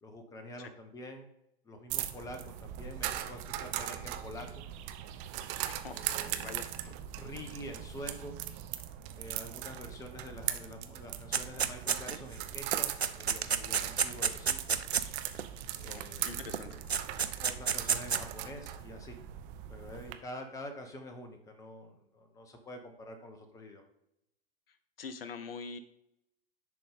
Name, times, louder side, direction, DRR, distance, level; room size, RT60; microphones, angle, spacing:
voice 1, 0.0-1.3 1.6-4.6 5.9-8.4 9.1-14.8 15.8-16.8 17.4-19.2 19.7-23.8, left 1 dB, 10° left, 6 dB, 0.9 m, -47 dB
sound 1, 1.9-20.1, right 12 dB, 25° right, 0.5 m, -39 dB
voice 2, 5.7-6.0 6.4-6.7 15.8-16.8 25.0-25.8, left 5 dB, 65° left, 11 dB, 0.7 m, -44 dB
sound 2, 11.3-12.3 12.7-15.4 16.5-16.6 16.9-18.2, right 6 dB, 85° right, 0.6 m, -30 dB
10.0 x 3.8 x 3.5 m, 0.79 s
figure-of-eight pair, 105°, 31 cm